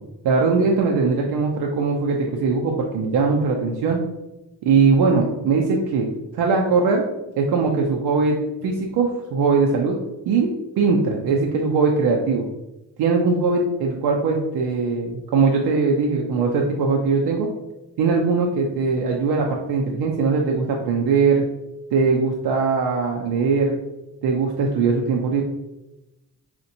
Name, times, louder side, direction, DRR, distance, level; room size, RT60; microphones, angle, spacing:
voice 1, 0.2-4.0 4.6-7.0 7.4-10.0 10.3-10.5 10.8-12.5 13.0-17.5 18.0-21.4 21.9-23.8 24.2-25.4, right 4 dB, 75° right, 0 dB, 0.6 m, -20 dB
4.3 x 2.5 x 2.7 m, 0.95 s
supercardioid pair, 60°, 40 cm